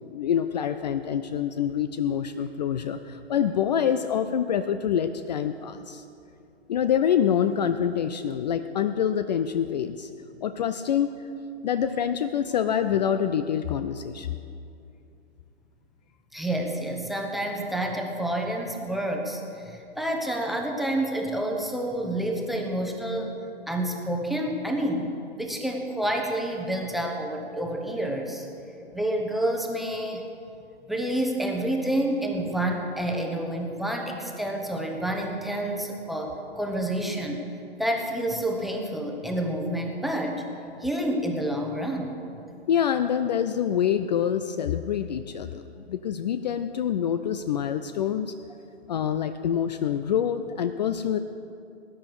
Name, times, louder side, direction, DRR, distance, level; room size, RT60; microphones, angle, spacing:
voice 1, 0.1-6.0 6.7-10.1 10.4-11.1 11.6-14.4 42.7-48.3 48.9-51.2, left 9 dB, 40° left, 10 dB, 0.5 m, -26 dB
voice 2, 16.3-23.4 23.7-25.1 25.4-28.5 28.9-30.2 30.9-37.4 37.8-40.4 40.8-42.1, right 1 dB, ahead, 2 dB, 1.0 m, -29 dB
19.0 x 10.0 x 4.8 m, 2.6 s
figure-of-eight pair, 120°, 33 cm